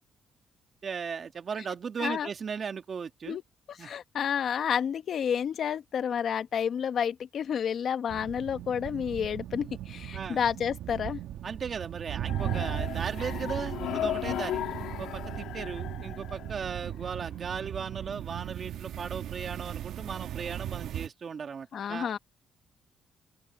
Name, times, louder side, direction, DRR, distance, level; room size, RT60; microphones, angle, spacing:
voice 1, 0.8-3.4 3.8-3.9 10.1-10.4 11.4-14.6 15.0-22.1, right 6 dB, 45° right, 2.3 m, -37 dB
voice 2, 2.0-2.3 3.3-3.4 3.7-11.2 21.7-22.2, left 8 dB, 60° left, 1.5 m, -30 dB
sound 1, 8.1-21.1, right 11 dB, 80° right, 1.5 m, -37 dB
sound 2, 12.3-17.2, left 12 dB, 85° left, 2.4 m, -36 dB
open air
cardioid pair, 90°, 0 cm